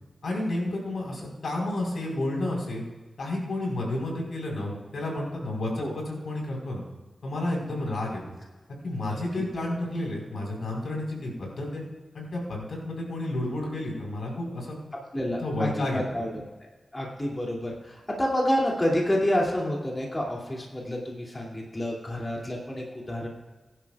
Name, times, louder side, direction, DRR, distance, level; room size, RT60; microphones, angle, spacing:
voice 1, 0.2-2.8 3.2-6.8 7.2-8.2 8.8-11.8 12.1-14.8 15.4-16.0, left 1 dB, 80° left, -1 dB, 4.5 m, -31 dB
voice 2, 15.1-16.4 16.9-23.3, equal, 20° left, -3 dB, 2.7 m, -28 dB
21.5 x 11.0 x 2.4 m, 1.3 s
wide cardioid pair, 105°, 0 cm